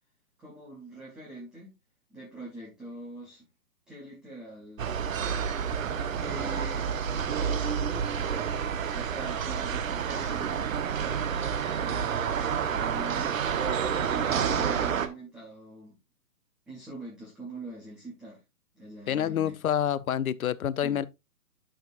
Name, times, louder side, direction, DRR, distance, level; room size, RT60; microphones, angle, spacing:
voice 1, 0.4-1.7 2.1-3.5 3.9-5.7 6.2-10.7 11.0-16.0 16.7-18.4 18.7-19.6 20.8-21.0, right 2 dB, ahead, 0.5 m, -44 dB
sound 1, 4.8-15.1, right 7 dB, 60° right, 1.2 m, -29 dB
voice 2, 19.1-21.1, left 10 dB, 65° left, 0.7 m, -27 dB
10.0 x 6.3 x 2.5 m
hypercardioid pair, 135°, 45 cm